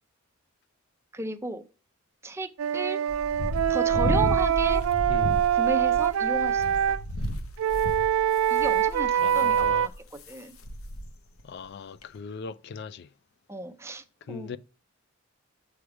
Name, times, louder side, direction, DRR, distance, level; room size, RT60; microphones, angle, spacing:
voice 1, 1.1-1.6 2.2-3.0 3.7-4.8 5.5-7.0 8.5-10.6 13.5-14.5, right 2 dB, 10° right, 0.4 m, -34 dB
Wind instrument woodwind instrument, 2.6-7.0 7.6-9.9, right 9 dB, 80° right, 0.3 m, -24 dB
sound 1, 3.1-10.3 10.6-11.1 11.4-11.5 12.0-12.1, left 1 dB, 75° left, 0.8 m, -33 dB
voice 2, 5.1-5.4 9.2-9.9 11.4-13.1 14.3-14.6, left 5 dB, 50° left, 0.4 m, -38 dB
7.0 x 3.3 x 4.8 m
head